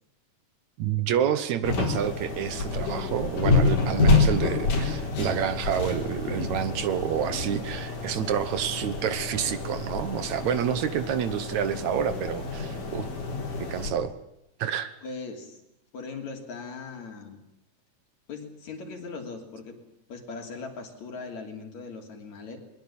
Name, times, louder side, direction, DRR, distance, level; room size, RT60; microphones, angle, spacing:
voice 1, 0.8-13.1 13.6-14.2 14.6-14.9, right 9 dB, 70° right, 12 dB, 2.4 m, -28 dB
sound 1, 1.6-13.9, left 3 dB, 85° left, 5.9 m, -28 dB
voice 2, 15.0-15.6 15.9-17.4 18.3-19.8 20.1-22.6, left 4 dB, 65° left, 3 dB, 4.4 m, -39 dB
22.0 x 21.5 x 8.8 m, 0.79 s
omnidirectional pair, 3.6 m